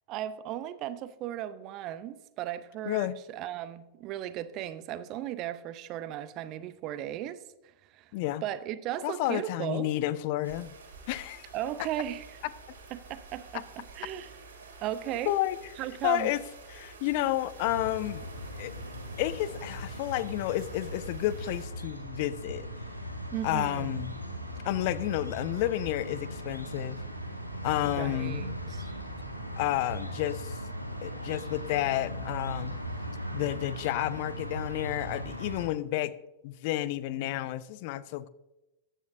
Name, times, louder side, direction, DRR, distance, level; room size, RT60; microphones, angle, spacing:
voice 1, 0.1-7.4 7.9-8.1 8.4-9.9 11.5-12.3 12.9-14.3 14.8-15.3 15.8-16.3 23.3-24.0 27.9-28.9, right 12 dB, 40° right, 0.6 m, -36 dB
voice 2, 2.9-3.2 8.1-8.4 9.0-10.7 11.1-11.5 15.3-15.6 16.0-16.4 16.7-18.3 18.6-18.7 19.2-22.7 23.4-24.1 24.6-27.0 27.6-28.4 29.6-30.6 31.0-32.7 33.3-36.2 36.4-38.3, left 14 dB, 50° left, 0.4 m, -31 dB
sound 1, 10.4-21.7, right 3 dB, 65° right, 2.6 m, -49 dB
sound 2, 17.6-35.7, equal, 90° right, 1.4 m, -38 dB
14.5 x 10.0 x 2.6 m
figure-of-eight pair, 90°, 0 cm